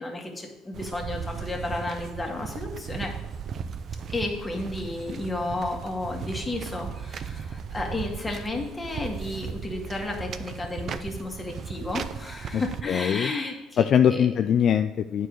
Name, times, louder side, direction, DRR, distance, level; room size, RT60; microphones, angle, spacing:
voice 1, 0.0-3.2 4.1-14.3, left 2 dB, 20° left, 2 dB, 1.9 m, -32 dB
sound 1, 0.7-12.8, right 7 dB, 50° right, 0.5 m, -36 dB
voice 2, 12.5-13.3 13.8-15.3, left 8 dB, 55° left, 9 dB, 0.4 m, -22 dB
9.0 x 4.7 x 6.3 m, 1.1 s
supercardioid pair, 90°, 0 cm